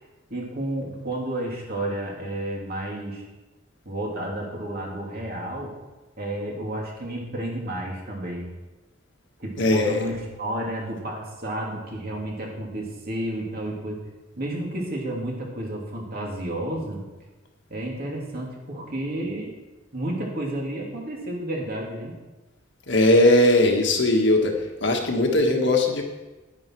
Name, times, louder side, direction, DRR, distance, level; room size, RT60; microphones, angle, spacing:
voice 1, 0.3-3.2 3.8-5.7 6.2-8.5 9.4-14.1 14.4-17.0 17.7-19.5 19.9-22.1, right 1 dB, 50° right, -2 dB, 2.9 m, -31 dB
voice 2, 9.6-10.0 22.9-24.5 24.8-26.0, left 1 dB, 65° left, 2 dB, 1.6 m, -19 dB
10.5 x 10.0 x 4.7 m, 1.1 s
head